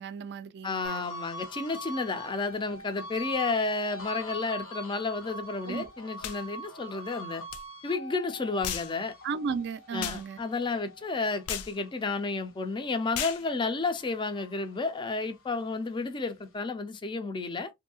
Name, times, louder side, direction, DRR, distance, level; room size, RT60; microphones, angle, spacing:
voice 1, 0.0-1.0 5.7-5.9 9.2-10.4, right 5 dB, 50° right, 0.4 m, -35 dB
voice 2, 0.6-7.4 7.8-9.1 9.9-17.7, left 3 dB, 20° left, 0.4 m, -31 dB
sound 1, 0.8-13.5 13.9-15.6, equal, 65° left, 0.9 m, -44 dB
sound 2, 6.2-6.4 7.5-7.6 8.6-8.9 10.0-10.2 11.5-11.7 13.1-13.4, left 10 dB, 85° left, 0.4 m, -34 dB
2.7 x 2.6 x 2.6 m
head